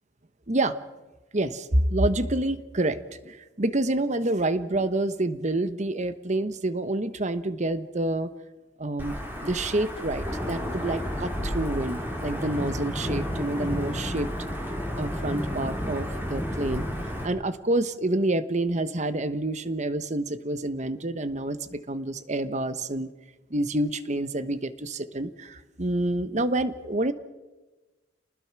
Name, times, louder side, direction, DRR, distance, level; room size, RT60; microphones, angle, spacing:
voice 1, 0.5-0.8 1.3-8.3 8.8-9.1 9.4-14.3 15.0-16.8 17.2-23.1 23.5-27.1, right 1 dB, 40° right, 12 dB, 1.1 m, -28 dB
Wind / Thunder / Rain, 9.0-17.3, equal, 10° right, 4.6 m, -31 dB
29.0 x 20.0 x 6.0 m, 1.2 s
head